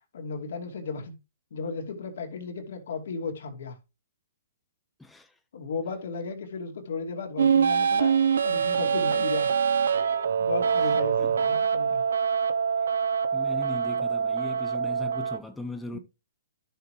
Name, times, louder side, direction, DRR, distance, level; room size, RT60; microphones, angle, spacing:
voice 1, 0.1-1.1 1.5-3.8 5.5-9.5 10.4-12.0 15.9-16.0, left 4 dB, 70° left, 2.6 m, -35 dB
voice 2, 5.0-5.4 10.8-10.9 11.2-11.3 13.3-16.0, left 3 dB, 5° left, 0.8 m, -38 dB
sound 1, 7.4-15.4, right 6 dB, 80° right, 0.9 m, -24 dB
11.5 x 6.7 x 3.2 m
hypercardioid pair, 145°, 0 cm